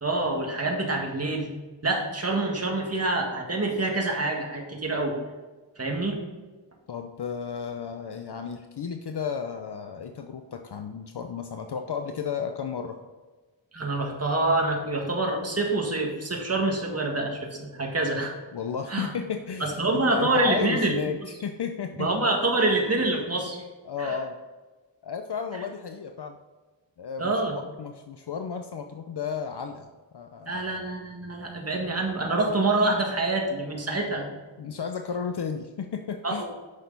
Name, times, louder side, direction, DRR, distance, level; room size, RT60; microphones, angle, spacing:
voice 1, 0.0-1.5 1.8-5.2 5.8-6.2 13.7-18.3 18.9-19.1 19.6-21.0 22.0-23.6 24.0-24.1 27.2-27.5 30.5-34.3 36.2-36.4, right 2 dB, 30° right, 0 dB, 1.9 m, -26 dB
voice 2, 6.9-13.0 18.5-22.1 23.8-24.4 25.0-26.4 27.0-27.4 27.8-29.9 30.1-30.7 31.7-31.8 34.0-34.1 34.6-36.4, left 6 dB, 60° left, 6 dB, 0.7 m, -33 dB
9.7 x 6.5 x 4.0 m, 1.3 s
wide cardioid pair, 100°, 46 cm